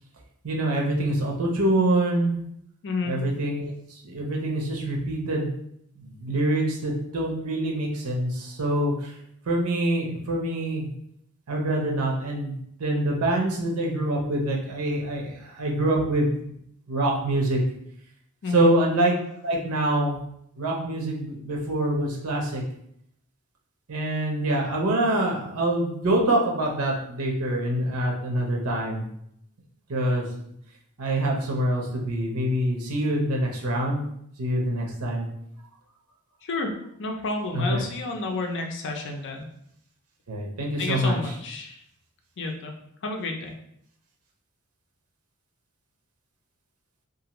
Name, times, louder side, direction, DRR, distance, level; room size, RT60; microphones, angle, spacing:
voice 1, 0.4-2.4 3.0-5.6 6.0-9.1 9.5-10.9 11.5-12.5 12.8-16.5 16.9-17.6 18.5-19.1 19.4-20.2 20.6-22.6 23.9-29.1 29.9-30.2 31.0-34.1 34.4-35.3 37.5-37.8 40.3-41.2, right 1 dB, 85° right, -1 dB, 0.7 m, -25 dB
voice 2, 2.8-3.1 18.4-18.7 36.4-36.7 37.0-39.5 40.8-41.8 42.4-42.8 43.0-43.5, left 3 dB, 55° left, 3 dB, 0.5 m, -30 dB
2.7 x 2.5 x 2.9 m, 0.73 s
head